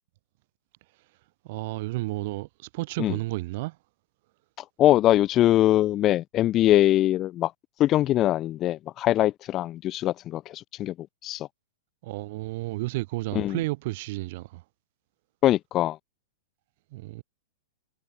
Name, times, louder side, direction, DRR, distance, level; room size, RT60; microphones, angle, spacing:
voice 1, 1.4-3.8 12.0-14.6 16.9-17.2, right 20 dB, 55° right, 4.4 m, -32 dB
voice 2, 4.8-7.5 7.8-10.9 11.2-11.5 13.4-13.6 15.4-16.0, left 13 dB, 30° left, 0.4 m, -22 dB
hypercardioid pair, 135°, 0 cm